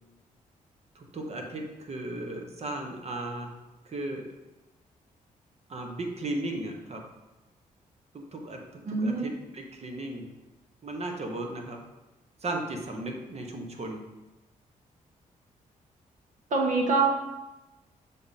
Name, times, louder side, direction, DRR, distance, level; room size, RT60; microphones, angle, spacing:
voice 1, 0.9-3.5 3.8-4.3 5.7-7.0 8.1-10.3 10.8-11.8 12.4-14.0, right 2 dB, 45° right, 2 dB, 1.1 m, -36 dB
voice 2, 8.8-9.3 16.5-17.1, right 4 dB, 65° right, 0 dB, 1.4 m, -24 dB
6.9 x 3.7 x 4.1 m, 1.1 s
cardioid pair, 90°, 15 cm